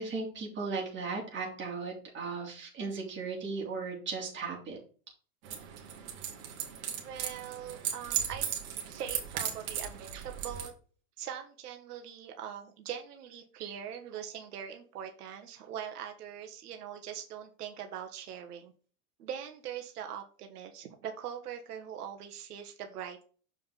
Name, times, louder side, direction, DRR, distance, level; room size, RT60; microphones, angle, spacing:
voice 1, 0.0-4.8, right 4 dB, 25° right, -1 dB, 3.3 m, -36 dB
sound 1, 5.4-10.7, right 9 dB, 65° right, 2.4 m, -37 dB
voice 2, 7.0-8.5 8.9-10.7 11.2-18.7 19.2-23.2, right 9 dB, 90° right, 4 dB, 1.3 m, -42 dB
7.2 x 5.3 x 3.9 m, 0.40 s
supercardioid pair, 130°, 45 cm